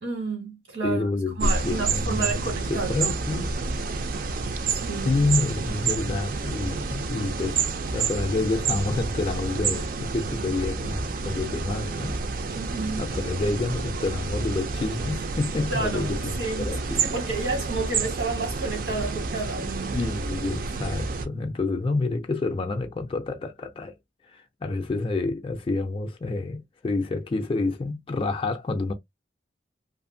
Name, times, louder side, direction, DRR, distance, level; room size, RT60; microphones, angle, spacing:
voice 1, 0.0-1.1 1.4-3.4 4.7-5.1 12.5-13.0 15.7-20.0, right 3 dB, 85° right, 1.4 m, -31 dB
voice 2, 0.8-3.5 5.0-12.1 13.0-17.0 19.9-23.9 24.2-28.9, left 3 dB, 30° left, 0.3 m, -28 dB
sound 1, 1.4-21.3, right 4 dB, 50° right, 0.4 m, -29 dB
2.7 x 2.5 x 2.6 m
head